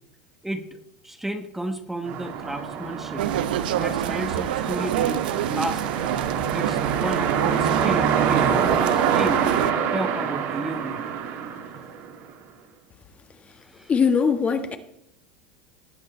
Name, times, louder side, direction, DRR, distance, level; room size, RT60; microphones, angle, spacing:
voice 1, 0.4-0.8 1.0-3.3 3.8-5.9 6.5-9.5 9.9-11.2 13.6-13.9, right 1 dB, 5° right, 7 dB, 1.2 m, -32 dB
sound 1, 2.0-12.3, right 7 dB, 60° right, 2.1 m, -26 dB
sound 2, 3.2-9.7, right 11 dB, 80° right, 0.7 m, -27 dB
voice 2, 13.9-14.8, left 6 dB, 25° left, 8 dB, 1.4 m, -21 dB
18.0 x 7.9 x 4.4 m, 0.81 s
supercardioid pair, 105°, 5 cm